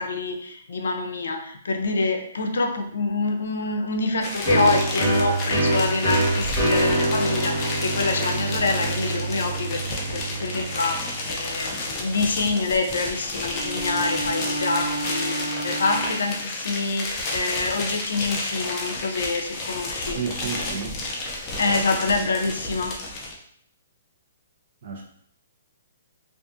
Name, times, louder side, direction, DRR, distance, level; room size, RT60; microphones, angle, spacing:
voice 1, 0.0-9.8 10.1-20.2 21.6-22.9, left 3 dB, 85° left, 4 dB, 0.5 m, -26 dB
sound 1, 4.2-23.3, left 2 dB, 20° left, 0.4 m, -31 dB
sound 2, 4.4-11.9, right 2 dB, 25° right, 1.4 m, -25 dB
Bowed string instrument, 13.4-16.5, right 1 dB, 75° right, 0.9 m, -31 dB
voice 2, 20.1-21.0 21.6-21.8 24.8-25.0, right 5 dB, 45° right, -2 dB, 0.6 m, -31 dB
2.6 x 2.5 x 2.3 m, 0.67 s
hypercardioid pair, 175°, 0 cm